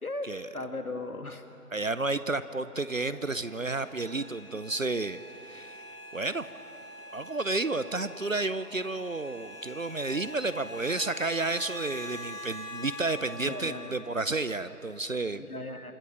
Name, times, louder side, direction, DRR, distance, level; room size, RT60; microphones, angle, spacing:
voice 1, 0.0-1.5 13.4-13.9 15.4-15.9, left 2 dB, 70° left, 7 dB, 1.7 m, -37 dB
voice 2, 1.7-5.9 6.1-6.5 7.1-15.5, right 3 dB, 60° right, 14 dB, 0.8 m, -31 dB
sound 1, 3.0-13.9, left 1 dB, 20° left, 5.3 m, -44 dB
26.5 x 20.5 x 6.5 m, 2.8 s
figure-of-eight pair, 170°, 45 cm